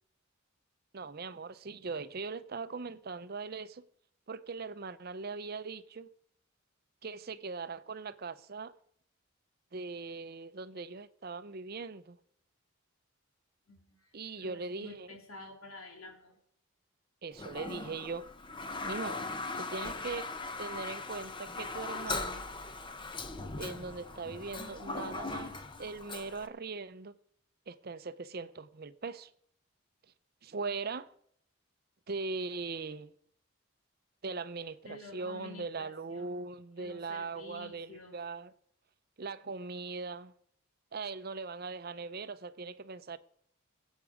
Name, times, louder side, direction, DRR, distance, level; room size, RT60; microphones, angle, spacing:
voice 1, 0.9-3.8 4.3-6.1 7.0-8.7 9.7-12.2 14.1-15.2 17.2-18.3 18.8-19.2 19.5-20.3 20.5-22.4 23.6-25.5 25.8-27.1 27.7-29.3 30.4-31.1 32.1-33.1 34.2-38.5 39.2-40.3 40.9-43.2, right 4 dB, 45° right, 0.6 m, -40 dB
voice 2, 13.7-14.1 14.4-16.3 34.8-36.5 36.8-38.2, left 3 dB, 90° left, 3.0 m, -50 dB
Toilet flush, 17.3-26.5, left 3 dB, 25° left, 0.8 m, -39 dB
21.5 x 8.3 x 4.9 m
head